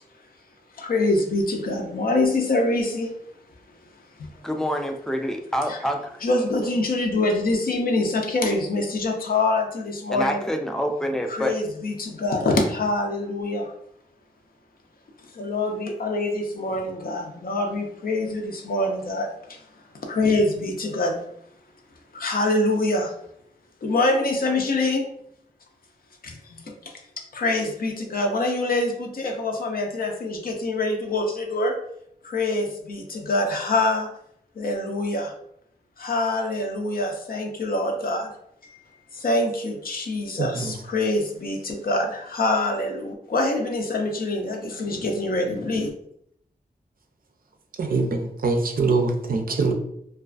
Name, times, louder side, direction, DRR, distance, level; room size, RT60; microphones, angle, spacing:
voice 1, 0.7-3.1 4.2-4.3 5.7-5.8 6.2-10.4 11.3-13.7 15.3-19.6 20.0-21.2 22.1-23.1 23.8-25.0 26.2-27.0 27.3-31.8 32.2-34.1 34.6-35.3 36.0-38.3 38.6-38.8 39.1-45.9, left 2 dB, 65° left, 2 dB, 0.5 m, -25 dB
voice 2, 4.4-6.2 10.1-11.5, equal, 5° left, 4 dB, 0.3 m, -26 dB
voice 3, 40.4-40.8 47.8-49.7, right 3 dB, 65° right, 4 dB, 0.4 m, -23 dB
2.3 x 2.3 x 2.4 m, 0.72 s
wide cardioid pair, 90°, 16 cm